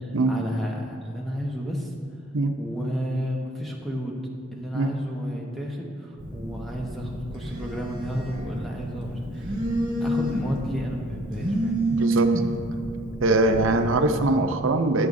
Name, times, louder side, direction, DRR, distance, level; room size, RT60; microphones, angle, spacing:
voice 1, 0.0-1.9 2.6-4.2 4.5-9.5 10.0-11.9, equal, ahead, -2 dB, 1.0 m, -32 dB
Telephone, 6.2-14.2, right 1 dB, 40° right, 2.0 m, -29 dB
voice 2, 11.9-12.3 13.2-15.1, right 2 dB, 75° right, 6 dB, 0.6 m, -22 dB
14.0 x 7.8 x 2.6 m, 2.2 s
head